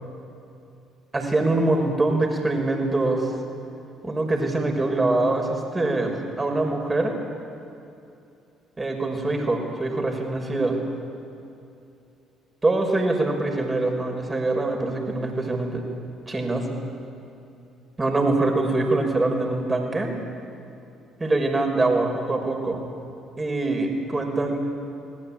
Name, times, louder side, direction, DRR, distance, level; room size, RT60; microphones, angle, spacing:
voice 1, 1.1-3.3 4.0-7.1 8.8-10.8 12.6-15.8 16.3-16.7 18.0-20.1 21.2-22.8 23.4-24.6, right 2 dB, 20° right, 3 dB, 5.9 m, -24 dB
27.5 x 20.5 x 9.0 m, 2.7 s
figure-of-eight pair, 45°, 0 cm